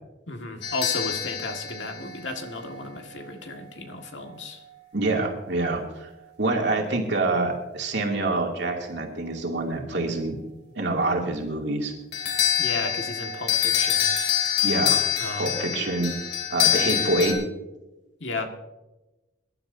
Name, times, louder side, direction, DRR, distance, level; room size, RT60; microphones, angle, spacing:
voice 1, 0.3-4.6 12.6-14.1 15.2-15.7 18.2-18.5, left 2 dB, 75° left, 4 dB, 1.8 m, -34 dB
sound 1, 0.6-2.9 12.1-17.3, left 9 dB, 55° left, 3.1 m, -25 dB
voice 2, 4.9-6.1 6.4-10.4 10.7-11.9 14.6-15.0 15.4-16.1 16.5-17.4, right 2 dB, 65° right, 1 dB, 2.5 m, -26 dB
22.5 x 12.0 x 2.7 m, 1.0 s
head